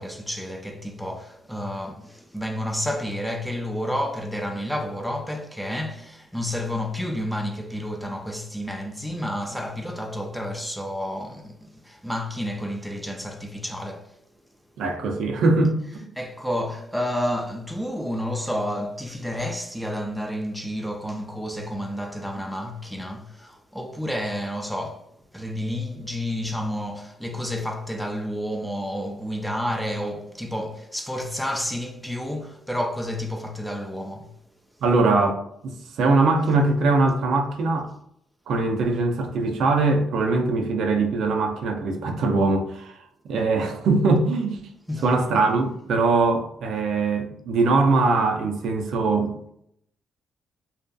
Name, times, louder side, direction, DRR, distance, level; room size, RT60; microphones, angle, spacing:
voice 1, 0.0-14.2 16.2-34.3 44.9-45.1, equal, ahead, 0.3 m, -30 dB
voice 2, 14.8-16.1 34.8-37.9 38.5-42.9 43.2-44.6 45.0-49.3, right 3 dB, 70° right, 0.4 m, -22 dB
2.6 x 2.3 x 2.2 m
cardioid pair, 90°, 0 cm